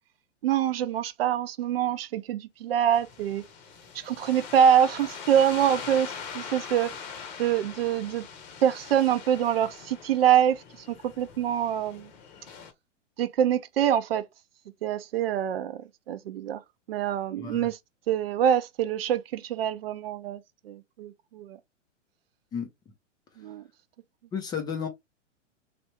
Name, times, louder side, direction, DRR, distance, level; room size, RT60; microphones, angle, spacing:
voice 1, 0.4-3.4 3.9-6.9 7.4-8.3 8.6-12.1 13.2-14.2 14.8-15.8 16.1-16.6 16.9-17.8 18.1-21.6 23.4-23.6, right 9 dB, 50° right, 0.6 m, -25 dB
sound 1, 2.9-12.7, left 6 dB, 35° left, 0.9 m, -42 dB
voice 2, 17.4-17.7 22.5-22.7 24.3-24.9, left 7 dB, 10° left, 0.6 m, -32 dB
3.3 x 2.4 x 3.0 m
figure-of-eight pair, 110°, 37 cm